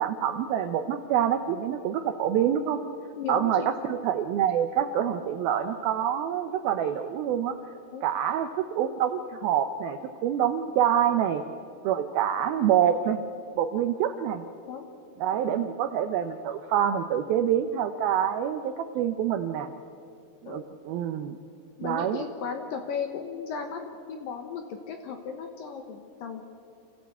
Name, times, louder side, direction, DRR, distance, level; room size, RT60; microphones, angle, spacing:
voice 1, 0.0-2.8 3.3-3.6 3.9-7.6 8.0-11.4 11.8-13.2 13.5-14.4 15.2-19.7 20.4-21.4 21.8-22.2, right 9 dB, 85° right, 8 dB, 2.1 m, -26 dB
voice 2, 3.2-3.7 5.0-5.2 7.9-8.0 14.7-14.8 15.5-15.6 20.5-20.7 21.8-26.4, left 6 dB, 70° left, 5 dB, 2.2 m, -35 dB
27.0 x 15.5 x 8.2 m, 2.5 s
omnidirectional pair, 5.3 m